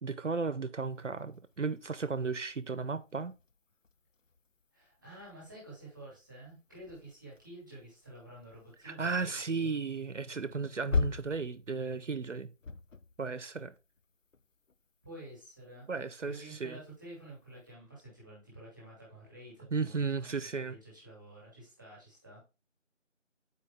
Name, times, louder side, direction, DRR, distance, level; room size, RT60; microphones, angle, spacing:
voice 1, 0.0-3.3 8.8-12.5 13.2-13.7 15.9-16.8 19.7-20.8, right 4 dB, 70° right, 0.7 m, -35 dB
sound 1, 0.8-17.7, left 4 dB, 85° left, 0.8 m, -43 dB
voice 2, 4.7-9.7 15.0-15.9 16.2-22.4, right 1 dB, 5° left, 2.0 m, -50 dB
8.4 x 4.6 x 3.4 m
figure-of-eight pair, 175°, 38 cm